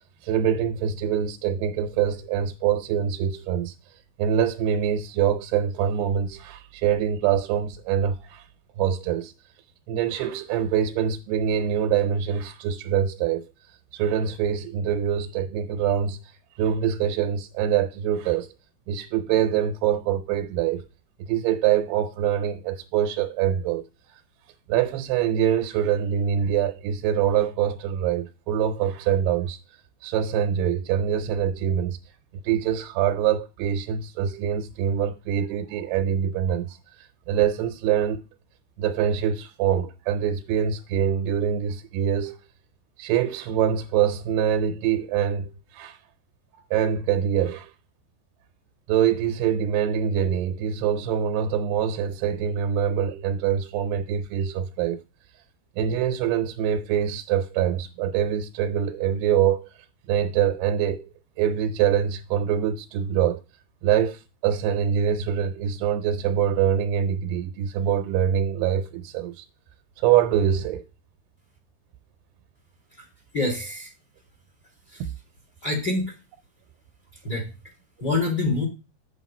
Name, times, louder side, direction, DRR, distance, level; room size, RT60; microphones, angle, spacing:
voice 1, 0.2-3.7 4.2-8.5 8.8-9.3 9.9-13.4 13.9-16.2 16.6-18.5 18.9-20.8 21.2-23.8 24.7-29.6 30.0-32.0 32.4-38.2 38.8-42.4 43.0-46.0 46.7-47.7 48.9-55.0 55.8-59.7 60.1-61.1 61.4-63.4 63.8-69.4 70.0-70.8, right 9 dB, 85° right, 2.8 m, -24 dB
voice 2, 73.3-73.9 74.9-75.0 75.6-76.1 77.2-77.5 78.0-78.7, left 2 dB, 30° left, 2.3 m, -26 dB
8.3 x 7.3 x 4.1 m
omnidirectional pair, 4.6 m